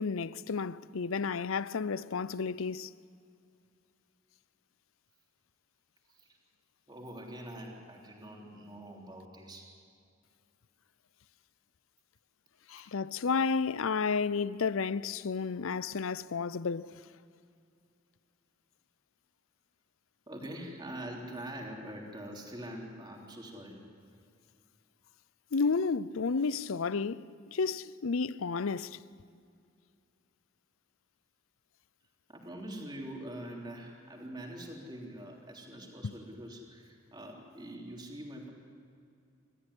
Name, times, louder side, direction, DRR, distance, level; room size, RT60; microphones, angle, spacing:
voice 1, 0.0-2.9 12.7-17.0 25.5-27.2 27.5-29.0 36.0-36.1, left 5 dB, 70° left, 0.6 m, -31 dB
voice 2, 6.9-9.7 12.7-12.9 20.3-23.8 26.6-26.8 32.3-38.5, right 1 dB, 20° right, 3.4 m, -44 dB
28.0 x 14.5 x 9.8 m
head